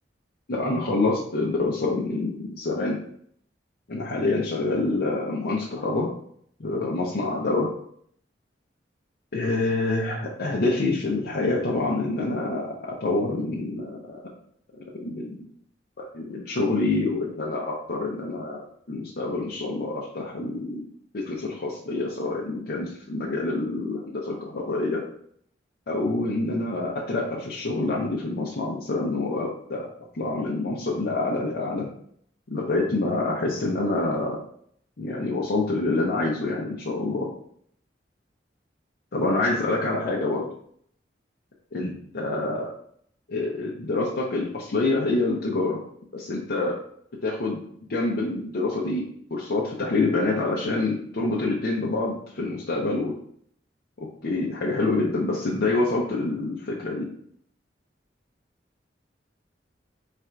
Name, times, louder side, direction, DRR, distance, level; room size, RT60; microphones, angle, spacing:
voice 1, 0.5-3.0 3.9-6.1 6.6-7.7 9.3-14.2 14.8-15.4 16.0-20.8 21.1-25.0 25.9-29.9 30.1-31.9 32.5-34.4 35.0-37.3 39.1-40.4 41.7-42.7 43.3-45.8 46.1-46.8 47.2-47.6 47.9-49.0 49.3-53.1 54.0-57.1, left 2 dB, 60° left, -4 dB, 0.6 m, -26 dB
3.3 x 2.5 x 4.4 m, 0.64 s
head